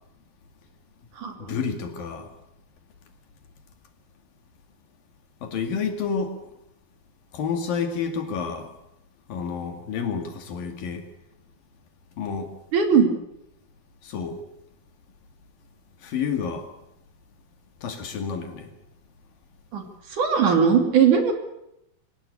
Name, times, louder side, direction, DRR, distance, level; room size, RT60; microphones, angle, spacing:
voice 1, 1.4-2.3 5.4-6.3 7.3-8.7 9.3-11.1 12.2-12.5 14.0-14.4 16.0-16.7 17.8-18.7, left 6 dB, 70° left, 5 dB, 4.0 m, -29 dB
voice 2, 12.7-13.1 19.7-19.8 20.1-21.3, right 6 dB, 55° right, 5 dB, 4.0 m, -19 dB
25.0 x 17.5 x 8.3 m, 0.83 s
omnidirectional pair, 4.3 m